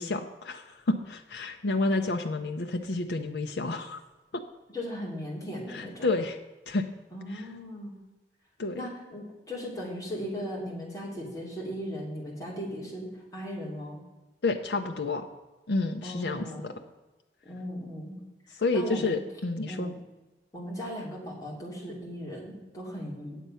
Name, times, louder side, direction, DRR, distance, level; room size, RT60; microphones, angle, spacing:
voice 1, 0.0-4.0 4.3-4.4 5.7-6.4 6.7-6.9 7.3-7.4 8.6-8.9 14.4-15.3 15.7-16.7 18.6-19.9, left 3 dB, 75° left, 4 dB, 0.6 m, -30 dB
voice 2, 4.7-6.1 7.1-7.9 8.7-14.0 16.0-16.7 17.4-18.2 18.5-19.2 19.7-19.9 20.5-23.4, equal, 20° left, -4 dB, 2.6 m, -37 dB
9.2 x 7.6 x 5.5 m, 1.1 s
head